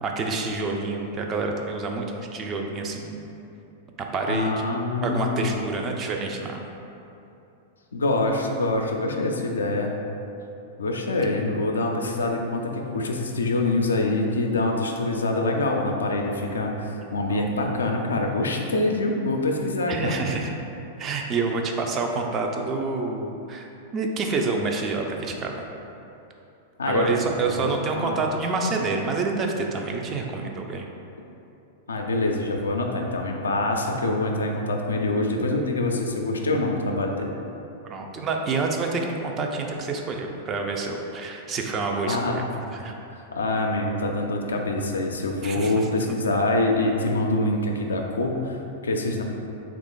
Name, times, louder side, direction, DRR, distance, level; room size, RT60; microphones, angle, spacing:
voice 1, 0.0-3.2 4.0-4.7 5.0-6.6 17.3-17.5 19.9-20.6 21.0-25.7 26.9-30.9 37.8-42.4 42.7-42.9 45.4-45.9, right 3 dB, 30° right, 2 dB, 0.4 m, -28 dB
voice 2, 4.3-5.7 7.9-9.9 10.8-20.2 26.8-28.1 31.9-37.3 42.1-42.4 43.1-49.2, left 2 dB, 85° left, 2 dB, 0.4 m, -25 dB
3.0 x 2.4 x 3.7 m, 2.8 s
hypercardioid pair, 105°, 0 cm